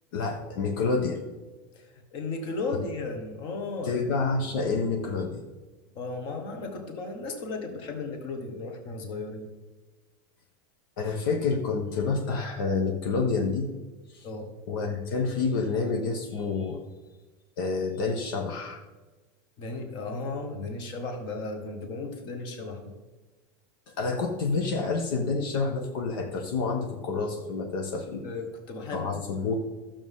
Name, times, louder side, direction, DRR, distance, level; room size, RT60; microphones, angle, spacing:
voice 1, 0.1-1.2 2.7-2.8 3.8-5.4 11.0-13.7 14.1-14.3 14.7-16.8 17.6-18.8 24.0-28.2 28.9-29.5, left 4 dB, 70° left, 3 dB, 1.2 m, -28 dB
voice 2, 1.8-4.0 6.0-9.5 14.2-14.5 19.6-23.0 28.2-29.2, left 3 dB, 40° left, 4 dB, 1.7 m, -35 dB
12.0 x 7.1 x 3.7 m, 1.2 s
supercardioid pair, 155°, 12 cm